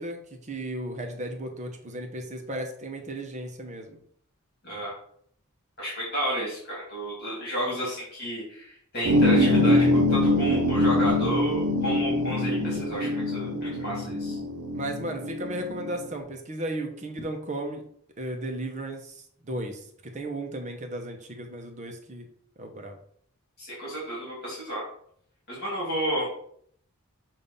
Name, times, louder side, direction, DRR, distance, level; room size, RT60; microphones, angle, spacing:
voice 1, 0.0-4.0 14.7-17.8 18.2-22.3 22.6-23.0, right 1 dB, 35° right, 3 dB, 0.9 m, -35 dB
voice 2, 5.8-14.4 23.6-24.8 25.5-26.3, equal, 45° left, -5 dB, 2.5 m, -32 dB
sound 1, 9.0-16.0, left 1 dB, 80° right, 0.8 m, -24 dB
7.2 x 2.7 x 5.5 m, 0.63 s
head